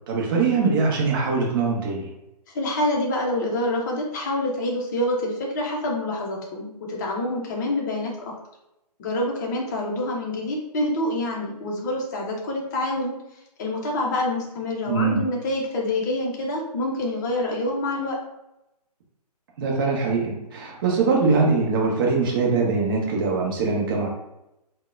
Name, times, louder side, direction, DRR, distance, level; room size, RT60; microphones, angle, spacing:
voice 1, 0.1-2.1 14.9-15.2 19.6-24.1, right 4 dB, 35° right, -2 dB, 0.7 m, -22 dB
voice 2, 2.5-8.1 9.0-13.1 13.6-18.2, left 1 dB, 25° left, -1 dB, 0.6 m, -26 dB
3.7 x 2.1 x 2.4 m, 0.90 s
figure-of-eight pair, 135°, 21 cm